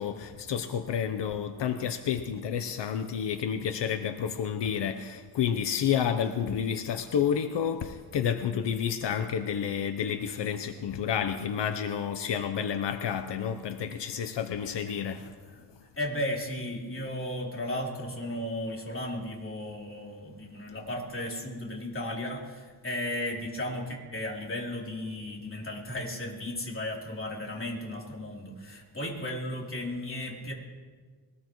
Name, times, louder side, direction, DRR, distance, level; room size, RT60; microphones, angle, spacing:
voice 1, 0.0-15.4, left 8 dB, 75° left, 8 dB, 0.8 m, -30 dB
voice 2, 16.0-30.5, left 1 dB, 30° left, -2 dB, 3.4 m, -35 dB
22.5 x 19.0 x 3.1 m, 1.5 s
wide cardioid pair, 120°, 42 cm